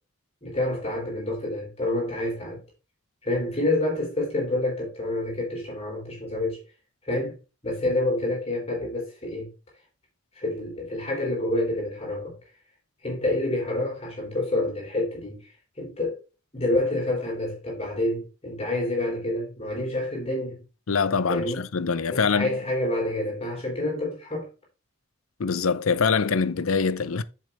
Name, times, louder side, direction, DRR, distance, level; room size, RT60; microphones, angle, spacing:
voice 1, 0.4-2.6 3.2-6.6 7.0-7.3 7.6-9.5 10.4-12.3 13.0-15.4 15.8-16.2 16.5-20.6 21.3-21.6 22.1-24.5, left 1 dB, 30° left, 4.0 m, -28 dB
voice 2, 20.9-22.5 25.4-27.2, left 5 dB, 85° left, 0.7 m, -24 dB
8.5 x 7.0 x 3.5 m
head